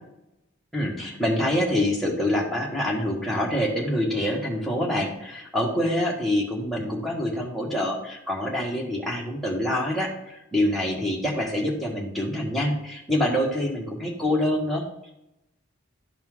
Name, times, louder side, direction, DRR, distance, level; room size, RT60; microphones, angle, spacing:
voice 1, 0.7-14.9, left 1 dB, ahead, -4 dB, 1.7 m, -26 dB
12.5 x 4.3 x 3.7 m, 0.87 s
head